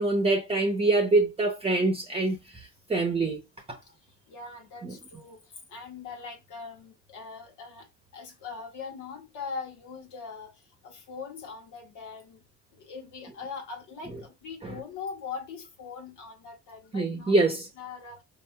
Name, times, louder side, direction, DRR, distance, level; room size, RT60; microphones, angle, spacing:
voice 1, 0.0-3.4 4.8-5.0 14.6-14.7 16.9-17.7, right 2 dB, 20° right, 0.7 m, -25 dB
voice 2, 4.3-5.4 5.7-7.9 8.1-10.5 10.8-12.4 12.7-18.2, left 5 dB, 85° left, 1.4 m, -41 dB
5.0 x 2.9 x 2.2 m
cardioid pair, 90°, 30 cm